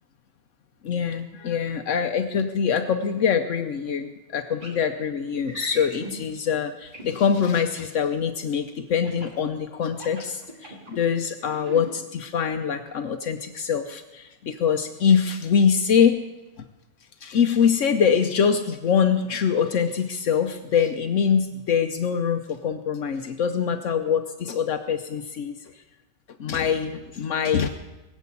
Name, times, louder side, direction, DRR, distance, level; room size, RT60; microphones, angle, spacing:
voice 1, 0.8-16.2 17.2-25.5 26.4-27.7, left 7 dB, 75° left, 7 dB, 1.1 m, -24 dB
sound 1, 4.6-4.8 5.5-6.2 6.9-7.5 9.0-9.4 9.9-11.0 11.5-11.9, right 1 dB, 40° right, 3.7 m, -39 dB
21.5 x 7.3 x 8.4 m, 1.1 s
omnidirectional pair, 1.3 m